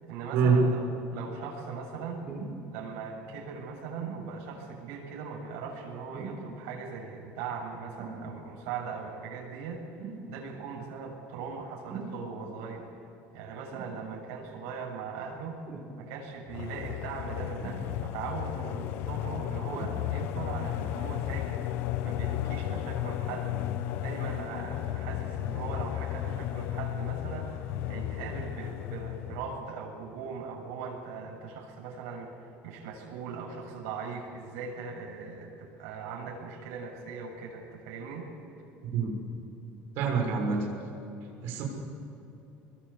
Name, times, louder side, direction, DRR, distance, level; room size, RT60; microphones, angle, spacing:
voice 1, 0.0-2.2 2.7-12.9 13.3-15.6 16.0-21.6 22.0-23.5 24.0-38.3, right 5 dB, 90° right, 0 dB, 7.4 m, -39 dB
sound 1, 2.3-2.6 4.0-4.3 6.1-6.5 8.0-8.2 10.0-10.3 11.9-12.2 13.7-14.0 15.7-15.9 17.6-18.2 19.7-20.0 20.8-20.9, right 5 dB, 25° right, 3.6 m, -40 dB
sound 2, 16.5-29.6, left 12 dB, 55° left, 1.0 m, -34 dB
voice 2, 40.0-40.6 41.4-41.6, right 6 dB, 55° right, 0 dB, 6.4 m, -25 dB
26.0 x 22.0 x 8.6 m, 2.9 s
cardioid pair, 180°, 5 cm